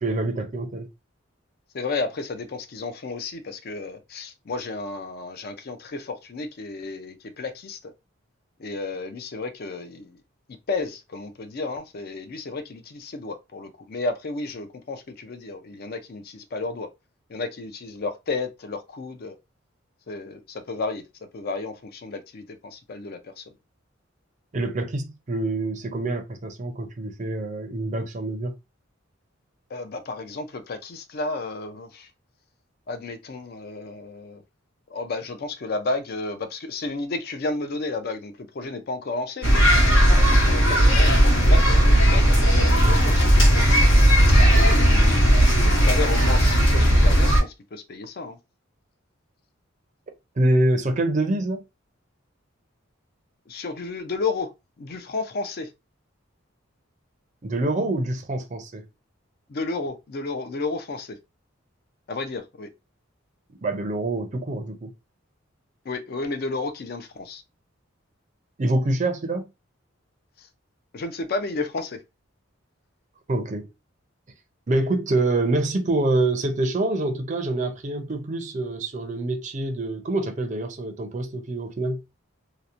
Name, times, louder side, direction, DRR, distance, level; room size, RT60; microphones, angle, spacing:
voice 1, 0.0-0.9 24.5-28.5 50.4-51.6 57.4-58.8 63.6-64.9 68.6-69.4 73.3-73.7 74.7-82.0, right 2 dB, 35° right, 0.5 m, -25 dB
voice 2, 1.7-7.9 8.6-10.2 10.7-16.9 17.3-19.4 20.1-21.0 21.3-23.5 29.7-32.1 32.9-34.4 34.9-39.8 40.1-44.0 44.3-45.3 45.7-48.4 53.5-54.5 54.8-55.7 59.5-61.2 62.1-62.7 65.8-67.4 70.4-70.5 70.9-72.0, left 3 dB, 50° left, 0.4 m, -32 dB
sound 1, 39.4-47.4, equal, 80° left, 1.2 m, -16 dB
2.8 x 2.1 x 2.4 m
head